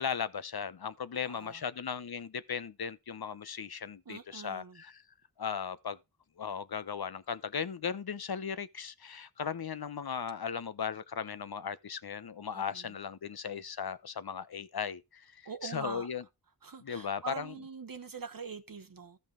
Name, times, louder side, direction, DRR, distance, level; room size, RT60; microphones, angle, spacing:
voice 1, 0.0-5.0 5.4-6.0 6.4-16.2 16.8-17.6, left 7 dB, 65° left, 0.9 m, -37 dB
voice 2, 1.2-1.6 4.1-4.8 12.5-12.9 15.4-16.1 16.6-19.2, right 5 dB, 55° right, 0.9 m, -44 dB
14.0 x 5.4 x 3.8 m
wide cardioid pair, 50°, 41 cm